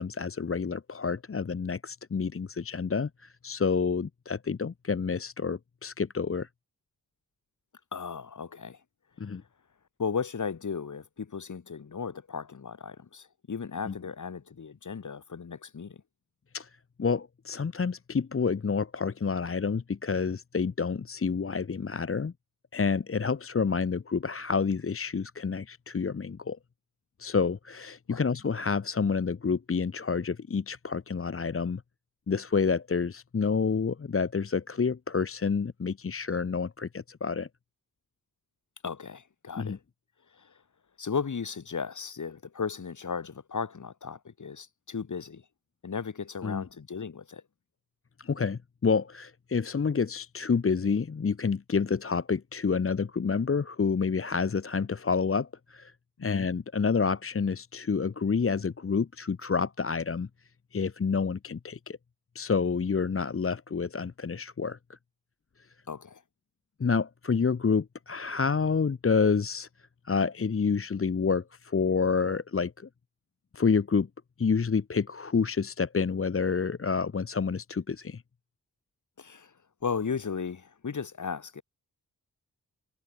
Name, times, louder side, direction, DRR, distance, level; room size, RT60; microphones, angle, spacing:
voice 1, 0.0-6.5 9.2-9.4 13.9-14.0 16.5-16.7 17.0-22.3 22.7-26.6 27.2-31.8 32.3-37.5 39.6-39.8 46.4-46.7 48.2-55.9 56.2-60.3 60.7-62.0 62.3-64.8 66.8-69.7 70.0-72.9 73.5-74.1 74.4-78.2, left 5 dB, 35° left, 1.0 m, -28 dB
voice 2, 7.9-8.8 10.0-16.0 28.1-28.3 38.8-39.8 40.3-40.5 41.0-45.4 45.8-47.4 56.2-56.5 65.9-66.2 79.2-79.5 79.8-81.6, left 5 dB, 55° left, 2.4 m, -35 dB
cardioid pair, 60°, 36 cm